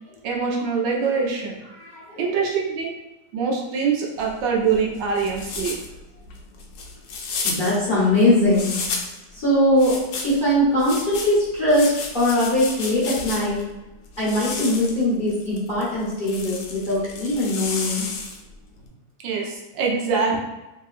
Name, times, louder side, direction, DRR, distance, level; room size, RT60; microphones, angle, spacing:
voice 1, 0.2-1.5 2.2-2.9 3.3-5.7 19.2-20.4, right 5 dB, 85° right, -1 dB, 1.4 m, -24 dB
voice 2, 1.7-2.3 7.4-8.8 9.3-13.7 14.2-18.1, left 1 dB, 35° left, -10 dB, 1.0 m, -21 dB
sound 1, 4.2-9.2 9.8-13.7 14.1-18.5, left 4 dB, 85° left, 1.3 m, -32 dB
3.4 x 2.8 x 2.4 m, 1.0 s
omnidirectional pair, 1.9 m